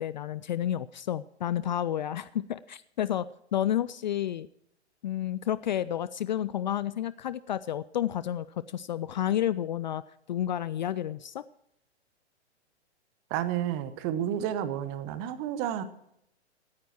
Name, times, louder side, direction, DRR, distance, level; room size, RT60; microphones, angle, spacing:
voice 1, 0.0-3.3 3.5-4.5 5.0-10.0 10.3-11.4, left 11 dB, 45° left, 17 dB, 0.4 m, -30 dB
voice 2, 13.3-15.8, right 10 dB, 25° right, 13 dB, 0.9 m, -31 dB
17.0 x 9.5 x 4.4 m, 0.77 s
figure-of-eight pair, 120°, 34 cm